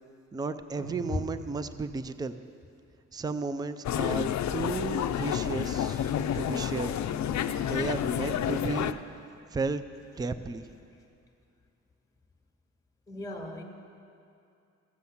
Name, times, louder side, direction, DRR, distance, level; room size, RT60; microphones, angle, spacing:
voice 1, 0.3-2.4 3.1-6.9 7.6-9.0 9.5-9.8 10.2-10.7, right 4 dB, 15° right, 12 dB, 0.3 m, -34 dB
sound 1, 0.7-2.2, right 4 dB, 75° right, 1.2 m, -46 dB
sound 2, 3.8-8.9, left 10 dB, 70° left, 0.5 m, -30 dB
voice 2, 13.1-13.6, left 3 dB, 10° left, 1 dB, 1.3 m, -35 dB
14.5 x 7.9 x 7.1 m, 2.5 s
wide cardioid pair, 160°, 29 cm